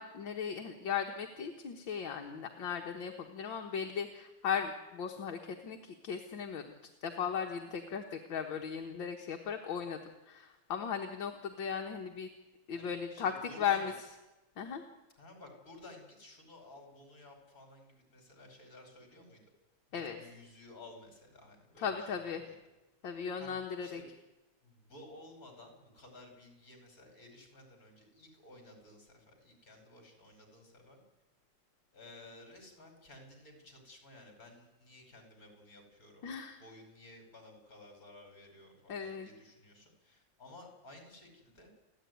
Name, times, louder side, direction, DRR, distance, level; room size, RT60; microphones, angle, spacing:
voice 1, 0.0-6.8 7.0-10.0 10.3-12.3 12.7-13.9 14.6-14.8 19.9-20.2 21.8-22.4 23.0-24.0 36.2-36.6 38.9-39.3, left 7 dB, 70° left, 3 dB, 2.1 m, -37 dB
voice 2, 12.7-13.9 15.2-19.4 19.9-22.6 23.4-23.6 23.8-24.1 24.6-31.0 31.9-36.3 36.6-41.7, left 2 dB, 45° left, 3 dB, 5.4 m, -55 dB
29.5 x 11.5 x 9.4 m, 1.1 s
omnidirectional pair, 2.2 m